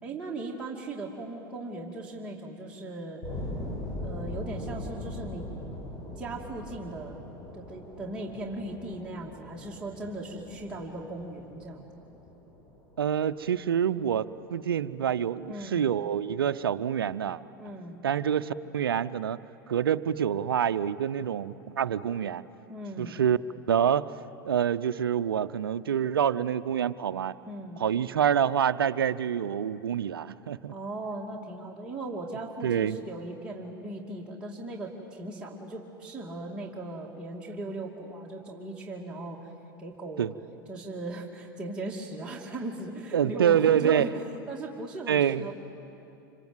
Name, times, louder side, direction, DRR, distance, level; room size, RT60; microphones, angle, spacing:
voice 1, 0.0-3.2 4.0-5.5 6.2-7.2 7.5-11.9 15.5-15.9 17.6-18.0 22.7-23.2 27.5-27.8 30.7-39.5 39.8-40.3 40.7-44.2 44.5-45.6, right 2 dB, 10° right, -4 dB, 2.6 m, -38 dB
sound 1, 3.2-14.0, left 1 dB, 30° left, 4.6 m, -41 dB
voice 2, 13.0-17.4 18.0-19.4 19.7-22.4 23.0-23.4 23.7-24.1 24.4-27.3 27.8-30.7 32.6-33.0 40.2-40.3 43.1-44.1 45.1-45.5, right 9 dB, 80° right, 13 dB, 0.6 m, -26 dB
26.5 x 25.5 x 8.0 m, 2.8 s
hypercardioid pair, 95°, 12 cm